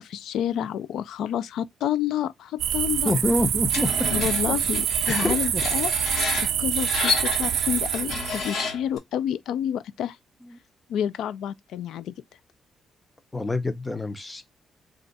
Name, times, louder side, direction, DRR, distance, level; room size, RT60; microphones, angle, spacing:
voice 1, 0.0-3.1 4.1-10.2 10.9-12.1, left 10 dB, 85° left, 0.3 m, -29 dB
sound 1, 2.6-8.5, right 10 dB, 70° right, 0.3 m, -26 dB
voice 2, 3.0-4.1 4.5-4.6 5.1-5.6 10.5-10.6 13.3-14.4, left 2 dB, 15° left, 0.5 m, -26 dB
Screech, 3.7-9.0, left 4 dB, 70° left, 1.1 m, -31 dB
4.3 x 2.4 x 3.8 m
cardioid pair, 155°, 0 cm